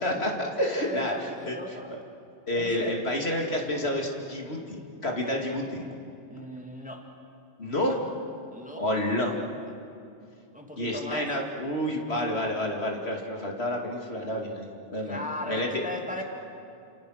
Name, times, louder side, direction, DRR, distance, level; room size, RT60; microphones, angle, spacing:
voice 1, 0.0-1.1 1.5-1.6 2.5-5.9 7.6-7.9 8.8-9.4 10.8-15.8, left 1 dB, 60° left, 1 dB, 2.9 m, -29 dB
voice 2, 0.8-1.9 2.5-2.9 6.3-7.0 7.8-8.0 8.5-8.8 10.5-11.3 15.1-16.2, left 1 dB, 5° right, 2 dB, 2.4 m, -37 dB
29.5 x 28.5 x 6.5 m, 2.6 s
omnidirectional pair, 1.2 m